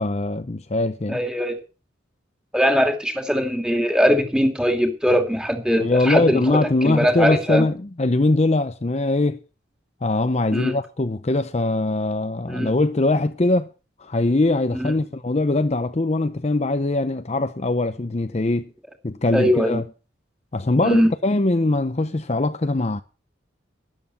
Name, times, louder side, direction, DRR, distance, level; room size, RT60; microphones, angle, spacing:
voice 1, 0.0-1.2 5.8-9.4 10.0-13.7 14.0-18.7 19.0-19.8 20.5-23.0, left 2 dB, 35° left, 0.6 m, -22 dB
voice 2, 1.1-1.6 2.5-6.6 6.8-7.6 10.5-10.7 12.5-12.7 14.7-14.9 19.3-19.8 20.8-21.1, equal, 5° right, 2.5 m, -21 dB
12.5 x 11.0 x 5.7 m
head